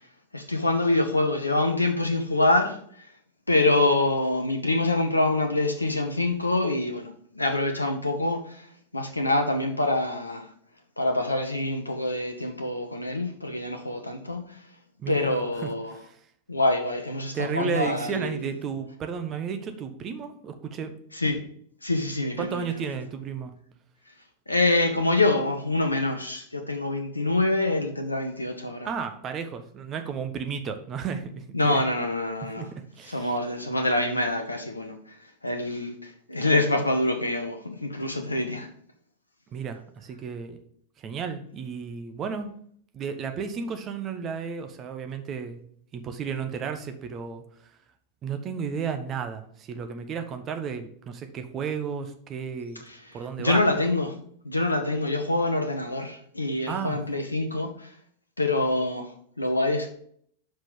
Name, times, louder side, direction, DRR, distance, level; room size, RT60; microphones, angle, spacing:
voice 1, 0.3-3.1 3.5-8.7 8.9-10.5 11.0-14.6 15.1-15.9 16.5-18.5 21.1-21.4 21.8-22.8 24.5-28.9 31.5-32.7 33.1-35.2 35.4-38.7 53.4-54.2 54.4-57.9 58.4-59.9, left 2 dB, 80° left, 5 dB, 0.8 m, -25 dB
voice 2, 15.0-16.2 17.3-20.9 22.4-23.5 28.8-31.8 32.4-33.4 39.5-40.6 41.0-42.5 42.9-45.6 45.9-47.7 48.2-52.8 53.1-53.6 56.7-57.0, right 6 dB, 30° right, 7 dB, 0.9 m, -33 dB
5.7 x 5.1 x 5.0 m, 0.62 s
figure-of-eight pair, 90°, 0 cm